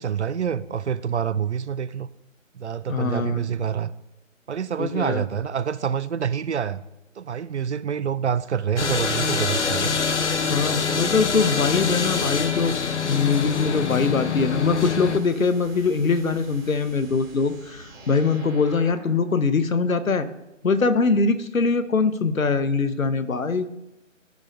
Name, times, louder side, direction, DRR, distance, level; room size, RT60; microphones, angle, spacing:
voice 1, 0.0-2.1 2.5-3.9 4.5-6.8 7.2-10.0, right 8 dB, 60° right, 16 dB, 0.5 m, -27 dB
voice 2, 2.9-3.4 4.8-5.2 10.5-12.8 13.1-20.3 20.6-23.7, left 4 dB, 90° left, 12 dB, 0.9 m, -22 dB
sound 1, 8.8-15.2, left 5 dB, 60° left, 0.8 m, -25 dB
sound 2, 12.8-19.3, right 2 dB, 40° right, 3.0 m, -46 dB
14.5 x 5.2 x 2.6 m, 0.93 s
figure-of-eight pair, 160°, 40 cm